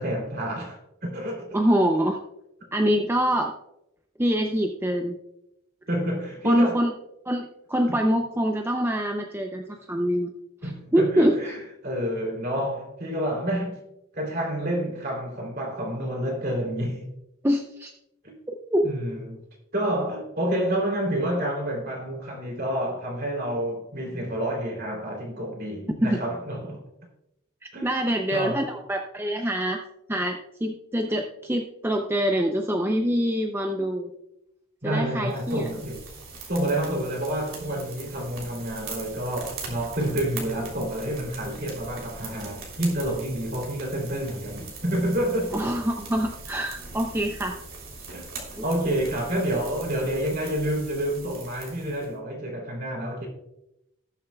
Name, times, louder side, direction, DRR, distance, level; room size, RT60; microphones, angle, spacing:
voice 1, 0.0-1.6 5.9-6.8 7.9-8.0 10.6-13.8 14.1-17.1 18.2-18.3 18.8-19.4 19.7-26.8 27.7-28.7 34.8-36.0 36.5-45.5 48.1-53.3, right 1 dB, 45° right, 3.1 m, -29 dB
voice 2, 1.5-2.2 2.7-3.5 4.2-5.2 6.4-6.9 7.3-10.3 10.6-11.4 17.4-17.9 18.5-18.8 26.0-26.2 27.8-29.8 30.1-34.1 34.8-35.7 45.5-47.6, equal, 10° right, 0.5 m, -25 dB
sound 1, 35.3-52.1, right 3 dB, 75° right, 3.2 m, -41 dB
19.5 x 7.2 x 2.3 m
head